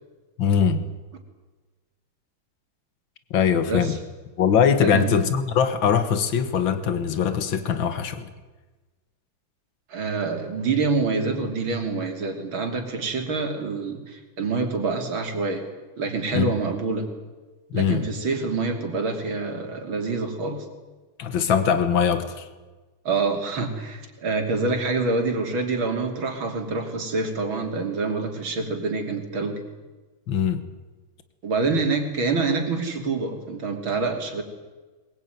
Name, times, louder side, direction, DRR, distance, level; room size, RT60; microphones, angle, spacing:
voice 1, 0.4-0.9 3.3-4.0 4.4-8.3 16.3-16.5 17.7-18.0 21.2-22.5 30.3-30.7, left 7 dB, 70° left, 11 dB, 2.2 m, -22 dB
voice 2, 3.7-4.0 4.8-5.1 9.9-15.7 16.0-17.1 17.7-20.7 23.1-29.6 31.4-34.4, right 3 dB, 75° right, 4 dB, 3.8 m, -26 dB
22.0 x 21.0 x 9.3 m, 1.3 s
omnidirectional pair, 2.2 m